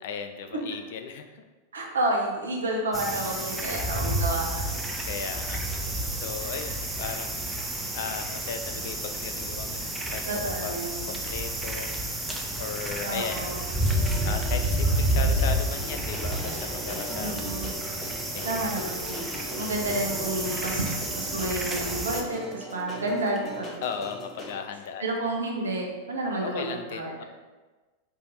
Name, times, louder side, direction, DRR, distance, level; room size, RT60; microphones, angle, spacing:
voice 1, 0.0-1.4 3.4-3.8 5.0-5.6 6.1-7.5 7.9-11.9 12.6-13.6 14.2-17.5 18.3-18.6 23.8-25.1 26.4-27.2, left 6 dB, 55° left, 7 dB, 0.4 m, -36 dB
voice 2, 1.7-4.8 6.4-6.5 10.3-11.0 13.0-13.6 17.2-17.7 18.4-23.7 25.0-27.2, right 1 dB, 70° right, 0 dB, 0.9 m, -30 dB
sound 1, 2.9-22.2, right 1 dB, 10° right, 0.6 m, -30 dB
sound 2, 13.3-24.6, equal, 20° left, 0.9 m, -40 dB
5.0 x 2.7 x 3.9 m, 1.2 s
figure-of-eight pair, 90°, 0 cm